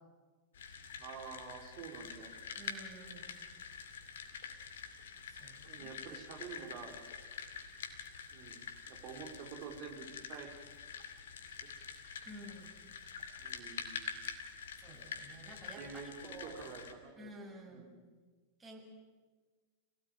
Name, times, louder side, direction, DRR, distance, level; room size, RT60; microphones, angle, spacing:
sound 1, 0.5-16.9, left 6 dB, 60° left, 2.4 m, -47 dB
voice 1, 1.0-2.3 5.6-6.9 8.3-10.5 11.6-11.7 13.4-14.1 15.7-17.3 17.7-17.9, right 6 dB, 45° right, 3 dB, 4.4 m, -48 dB
voice 2, 2.6-3.4 5.3-6.1 12.2-12.8 14.8-16.5 17.2-17.9 18.6-18.8, right 1 dB, 20° right, 0 dB, 6.8 m, -52 dB
28.0 x 17.0 x 9.1 m, 1.4 s
figure-of-eight pair, 90°, 0 cm